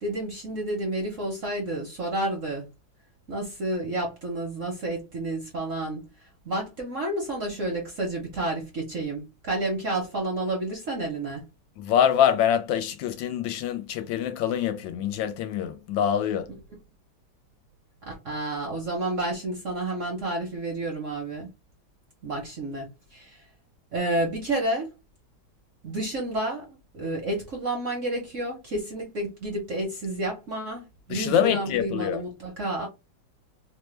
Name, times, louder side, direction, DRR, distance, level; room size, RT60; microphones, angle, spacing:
voice 1, 0.0-2.7 3.3-11.4 18.0-21.5 22.2-23.4 23.9-24.9 25.8-32.9, right 1 dB, 55° right, 0.9 m, -30 dB
voice 2, 11.8-16.5 31.1-32.2, left 9 dB, 75° left, 1.3 m, -25 dB
3.2 x 2.1 x 3.1 m
omnidirectional pair, 2.2 m